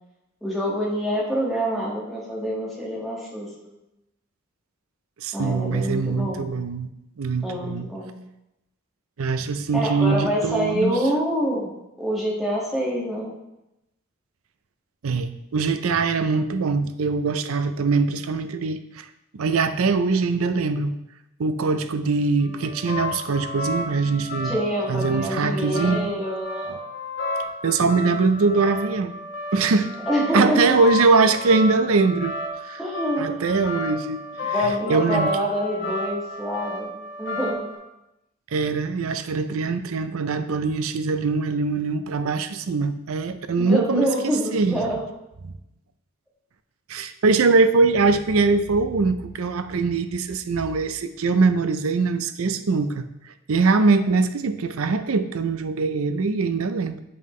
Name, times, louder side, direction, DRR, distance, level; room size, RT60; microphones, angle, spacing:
voice 1, 0.4-3.8 5.3-6.5 7.4-8.2 9.7-11.7 12.0-13.3 24.4-26.8 30.1-30.6 32.8-33.5 34.5-37.7 43.6-45.0, equal, ahead, -6 dB, 1.8 m, -26 dB
voice 2, 5.2-6.9 7.2-7.9 9.2-11.0 15.0-19.1 19.3-20.9 21.4-24.6 24.9-26.0 26.7-26.8 27.6-29.2 29.5-29.9 30.3-32.4 32.6-32.8 33.2-35.3 38.5-44.1 44.5-44.8 45.4-45.5 46.9-53.0 53.5-57.0, right 4 dB, 75° right, 10 dB, 0.5 m, -22 dB
sound 1, 22.4-37.8, left 2 dB, 55° left, 1.2 m, -32 dB
7.6 x 5.5 x 3.2 m, 0.88 s
head